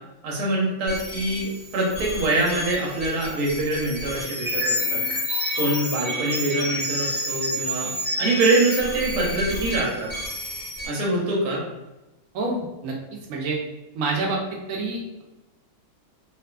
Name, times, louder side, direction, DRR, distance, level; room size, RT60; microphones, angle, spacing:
voice 1, 0.2-5.0 5.6-7.9 8.2-10.1 10.9-11.6, right 2 dB, 90° right, -3 dB, 1.3 m, -24 dB
sound 1, 0.9-10.9, left 1 dB, 40° right, 0.8 m, -29 dB
voice 2, 12.3-13.0 13.3-13.6 13.9-15.2, right 3 dB, 70° right, -1 dB, 0.9 m, -27 dB
2.6 x 2.4 x 2.2 m, 1.0 s
omnidirectional pair, 1.6 m